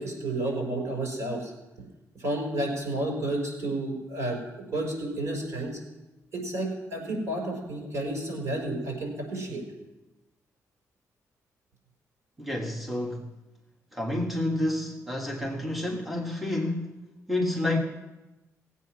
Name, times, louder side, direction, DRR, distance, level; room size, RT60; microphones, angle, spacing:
voice 1, 0.0-1.5 2.2-4.4 4.7-5.8 6.3-9.6, right 1 dB, 55° right, 1 dB, 5.1 m, -31 dB
voice 2, 12.4-13.3 13.9-17.0 17.3-17.8, left 1 dB, 5° right, 0 dB, 1.5 m, -29 dB
17.5 x 8.4 x 6.1 m, 1.0 s
cardioid pair, 120°, 6 cm